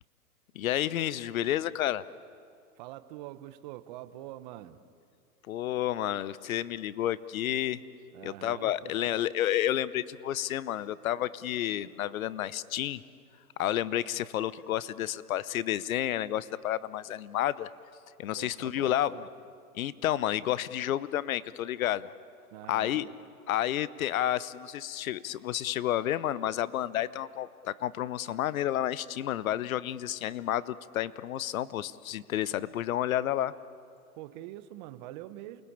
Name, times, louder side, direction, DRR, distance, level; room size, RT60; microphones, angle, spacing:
voice 1, 0.5-2.0 5.5-7.8 8.2-13.0 13.6-17.7 18.2-19.3 19.7-22.1 22.7-23.1 23.5-33.5, left 12 dB, 65° left, 18 dB, 0.9 m, -30 dB
voice 2, 2.8-4.8 8.1-9.2 18.3-19.3 22.5-23.1 34.2-35.6, right 14 dB, 30° right, 12 dB, 0.9 m, -45 dB
28.5 x 20.5 x 8.6 m, 2.4 s
hypercardioid pair, 150°, 45 cm